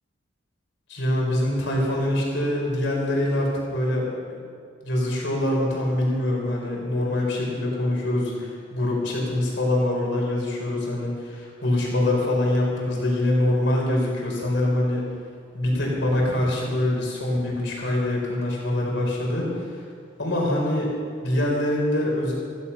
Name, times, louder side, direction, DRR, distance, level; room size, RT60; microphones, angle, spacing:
voice 1, 0.9-4.4 4.8-15.1 15.5-19.7 20.2-20.9 21.2-22.3, left 1 dB, 70° left, -2 dB, 5.0 m, -24 dB
15.5 x 15.5 x 5.8 m, 2.2 s
head